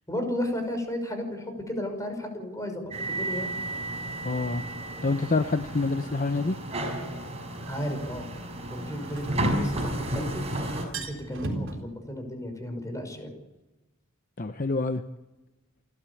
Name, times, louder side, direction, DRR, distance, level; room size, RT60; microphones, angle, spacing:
voice 1, 0.1-3.5 7.7-8.3 8.7-10.4 10.9-13.3, equal, 15° left, 5 dB, 5.7 m, -34 dB
sound 1, 2.9-10.9, right 1 dB, 30° right, 5.5 m, -32 dB
voice 2, 4.2-4.6 5.0-6.6 14.4-15.0, left 3 dB, 40° left, 9 dB, 0.8 m, -27 dB
sound 2, 6.4-6.5 8.8-10.1 10.4-10.5 10.8-11.8, right 2 dB, 65° right, 4.1 m, -37 dB
28.5 x 12.5 x 8.5 m, 1.1 s
head